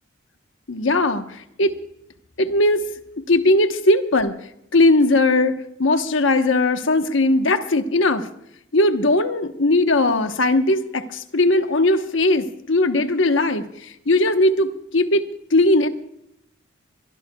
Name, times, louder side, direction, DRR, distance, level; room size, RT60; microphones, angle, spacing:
voice 1, 0.7-1.7 2.4-2.9 3.2-4.3 4.7-8.3 8.7-15.9, left 2 dB, 80° left, 8 dB, 1.1 m, -19 dB
23.5 x 22.0 x 2.3 m, 0.77 s
head